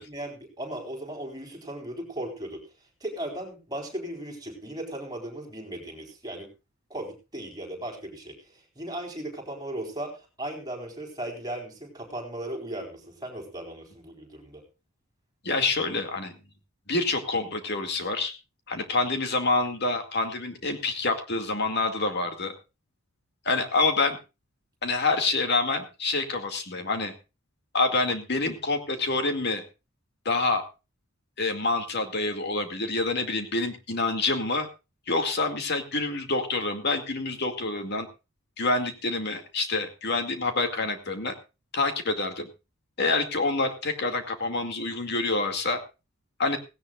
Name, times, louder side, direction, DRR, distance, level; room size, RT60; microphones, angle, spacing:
voice 1, 0.0-2.6 3.0-6.5 6.9-10.1 10.4-14.6, right 1 dB, 20° right, 1 dB, 4.1 m, -37 dB
voice 2, 15.4-16.4 16.9-18.3 18.7-22.5 23.5-24.2 24.8-27.1 27.7-29.6 30.3-30.6 31.4-34.7 35.1-38.1 38.6-41.3 41.7-42.5 43.0-45.8 46.4-46.6, left 3 dB, 50° left, 6 dB, 2.3 m, -27 dB
17.0 x 17.0 x 2.4 m, 0.29 s
head